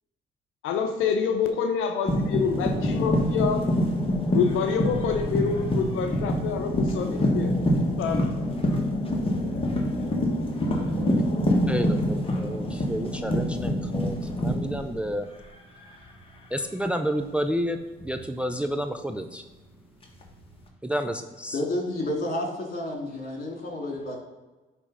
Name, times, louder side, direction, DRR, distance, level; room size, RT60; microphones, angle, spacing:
voice 1, 0.6-3.7 4.3-7.5 8.0-8.3, left 6 dB, 90° left, 5 dB, 0.7 m, -27 dB
sound 1, 2.1-15.5 15.8-16.3 18.0-18.2 20.0-20.6, left 1 dB, 30° left, 1.6 m, -26 dB
voice 2, 11.7-15.3 16.5-19.4 20.8-21.6, equal, 5° right, 6 dB, 0.5 m, -30 dB
voice 3, 21.5-24.2, left 1 dB, 45° left, 1 dB, 2.7 m, -30 dB
9.8 x 3.6 x 5.5 m, 1.2 s
cardioid pair, 90°, 20 cm